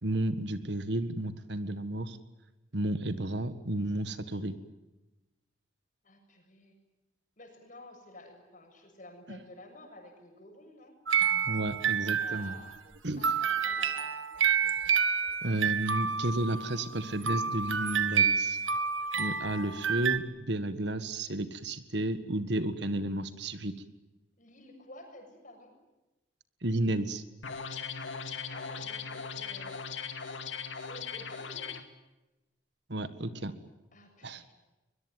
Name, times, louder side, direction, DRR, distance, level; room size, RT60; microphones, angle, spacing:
voice 1, 0.0-2.2 2.7-4.5 9.3-9.4 11.5-12.5 13.0-13.2 14.8-15.0 15.4-18.6 19.2-23.7 26.6-27.2 32.9-33.5 34.2-34.5, right 1 dB, 60° right, 12 dB, 1.7 m, -32 dB
voice 2, 6.0-6.8 7.4-11.0 12.2-12.8 13.2-14.1 24.4-25.7 28.5-29.8 30.9-31.8 33.9-34.5, left 1 dB, 40° left, 4 dB, 6.9 m, -51 dB
sound 1, 11.1-12.7 13.2-20.2, right 7 dB, 85° right, 1.8 m, -29 dB
sound 2, 27.4-31.8, left 6 dB, 75° left, 2.4 m, -39 dB
23.5 x 21.5 x 9.4 m, 1.0 s
head